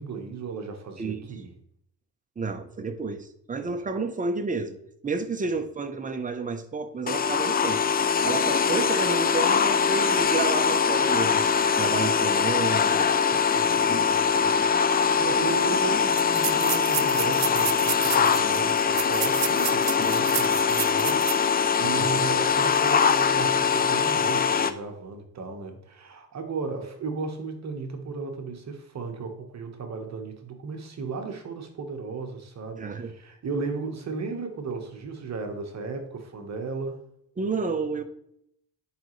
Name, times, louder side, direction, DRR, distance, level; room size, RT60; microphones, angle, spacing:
voice 1, 0.0-1.5 3.6-3.7 13.5-37.0, right 4 dB, 45° right, 4 dB, 1.3 m, -35 dB
voice 2, 1.0-1.3 2.4-4.8 5.0-13.1 21.9-22.2 32.8-33.1 37.4-38.0, right 4 dB, 20° right, 7 dB, 0.8 m, -31 dB
sound 1, 7.1-24.7, left 6 dB, 25° left, 0.4 m, -22 dB
sound 2, 15.0-15.1 15.3-15.4 16.1-21.5 21.9-22.0 22.5-22.7, right 14 dB, 70° right, 0.6 m, -32 dB
10.0 x 5.1 x 3.2 m, 0.73 s
cardioid pair, 115°, 39 cm